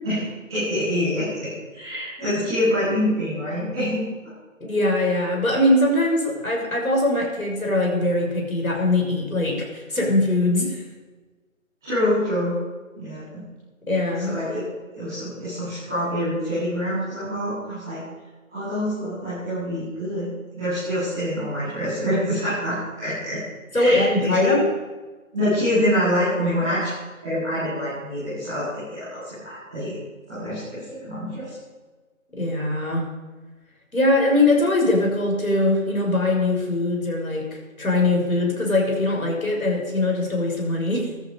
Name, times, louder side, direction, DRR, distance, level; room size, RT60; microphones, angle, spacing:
voice 1, 0.0-4.0 11.8-12.6 12.9-13.4 14.2-14.6 14.9-18.0 18.5-23.4 23.7-24.5 25.3-26.9 27.2-30.0 30.3-31.5, equal, 5° right, -19 dB, 2.5 m, -26 dB
voice 2, 4.6-10.8 13.9-14.4 23.7-24.6 32.3-33.1 33.9-41.1, left 2 dB, 85° left, 0 dB, 6.6 m, -22 dB
18.5 x 14.0 x 5.0 m, 1.3 s
figure-of-eight pair, 175°, 41 cm